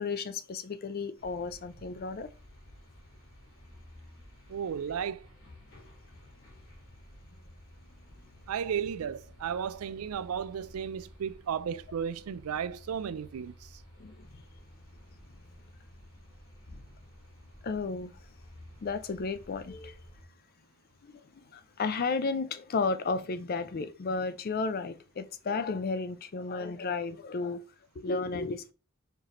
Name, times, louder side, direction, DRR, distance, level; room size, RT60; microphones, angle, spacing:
voice 1, 0.0-2.3 14.0-14.4 17.6-18.1 18.8-20.0 21.0-27.6 28.0-28.7, left 4 dB, 45° left, 0.4 m, -33 dB
sound 1, 1.2-20.2, left 1 dB, 70° left, 2.3 m, -53 dB
voice 2, 4.5-5.3 8.5-13.8, right 7 dB, 90° right, 0.4 m, -34 dB
4.5 x 3.2 x 3.7 m
head